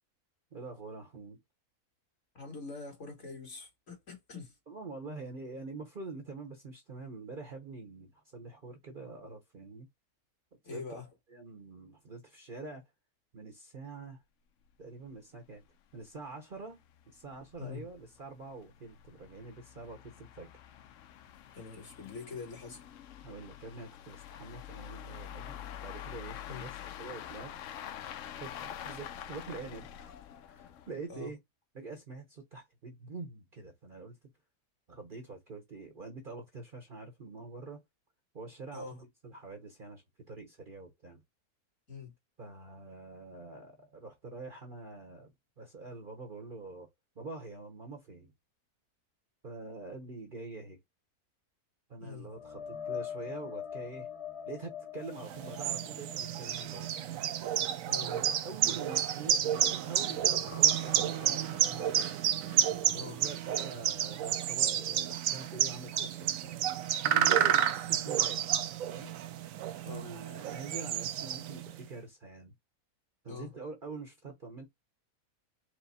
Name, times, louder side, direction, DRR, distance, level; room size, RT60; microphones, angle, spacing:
voice 1, 0.5-1.4 4.7-9.9 10.6-11.0 11.3-12.8 13.3-14.2 14.8-15.6 15.9-16.8 17.1-20.5 23.2-25.5 25.8-27.5 28.4-30.1 30.5-31.4 31.7-34.2 34.9-37.8 38.3-41.2 42.4-46.9 47.2-48.3 49.4-50.8 51.9-54.1 54.5-57.0 58.0-62.2 63.0-66.6 67.0-68.5 68.9-69.1 69.9-72.5 73.2-74.7, right 3 dB, 40° right, 1.0 m, -45 dB
voice 2, 2.3-4.6 10.6-11.1 17.6-17.9 21.5-22.8 26.5-26.7 31.1-31.3 38.7-39.0 41.9-42.1 52.0-52.3 57.9-58.1 62.9-63.2 69.8-70.1 73.3-73.5, left 4 dB, 50° left, 1.9 m, -44 dB
sound 1, 14.7-14.8 15.0-15.1 15.6-15.7 16.0-16.1 16.7-31.1, left 10 dB, 65° left, 0.8 m, -46 dB
sound 2, 52.3-59.7 60.1-63.9 64.3-64.5 67.9-68.0, left 8 dB, 85° left, 1.6 m, -45 dB
sound 3, 55.2-71.8, right 10 dB, 70° right, 0.9 m, -30 dB
4.7 x 2.1 x 4.1 m
omnidirectional pair, 1.6 m